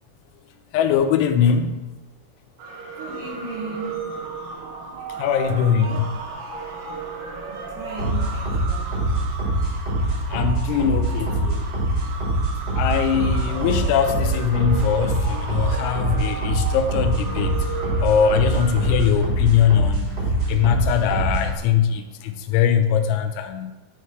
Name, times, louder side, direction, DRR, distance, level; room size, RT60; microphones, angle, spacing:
voice 1, 0.7-1.8 5.2-6.2 10.3-11.7 12.7-17.5 18.0-20.1 20.5-23.7, left 8 dB, 85° left, 7 dB, 3.0 m, -21 dB
sound 1, 2.6-19.1, right 5 dB, 90° right, 3.6 m, -35 dB
voice 2, 3.0-4.1 7.5-9.2, right 3 dB, 65° right, -5 dB, 2.4 m, -36 dB
sound 2, 8.0-21.6, right 1 dB, 30° right, 1.9 m, -24 dB
9.7 x 3.3 x 4.5 m, 1.1 s
omnidirectional pair, 5.4 m